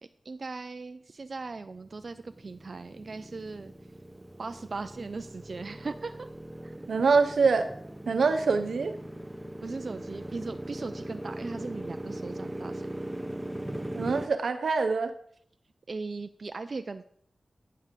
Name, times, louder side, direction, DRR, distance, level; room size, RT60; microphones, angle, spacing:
voice 1, 0.2-3.7 4.4-6.3 6.6-6.7 9.6-12.8 15.9-17.1, right 3 dB, 60° right, 9 dB, 0.4 m, -38 dB
Motorcycle, 1.6-14.3, right 1 dB, 10° right, 0.8 m, -40 dB
voice 2, 6.9-7.7 8.1-9.0 13.9-15.1, right 4 dB, 85° right, 7 dB, 0.9 m, -24 dB
9.4 x 5.7 x 5.1 m, 0.63 s
cardioid pair, 55°, 0 cm